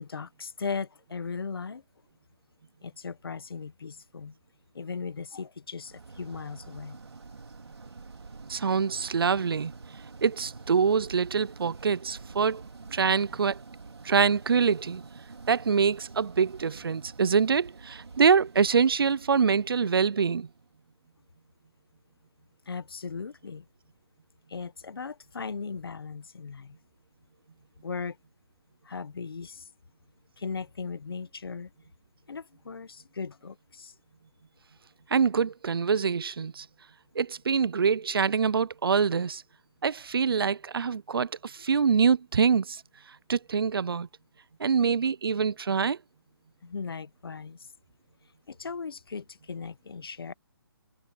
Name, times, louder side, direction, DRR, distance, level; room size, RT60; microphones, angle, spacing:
voice 1, 0.0-1.8 2.8-4.3 4.7-7.0 22.7-23.7 24.5-26.8 27.8-28.2 28.8-29.7 30.4-31.7 32.3-33.9 46.6-47.7 48.5-50.3, left 5 dB, 65° left, 1.4 m, -37 dB
sound 1, 5.8-20.8, right 4 dB, 85° right, 4.0 m, -47 dB
voice 2, 8.5-9.7 10.2-12.6 12.9-13.6 14.0-15.0 15.5-20.5 35.1-36.7 37.2-39.4 39.8-42.8 43.3-44.1 44.6-46.0, right 6 dB, 65° right, 0.6 m, -25 dB
hypercardioid pair, 175°, 13 cm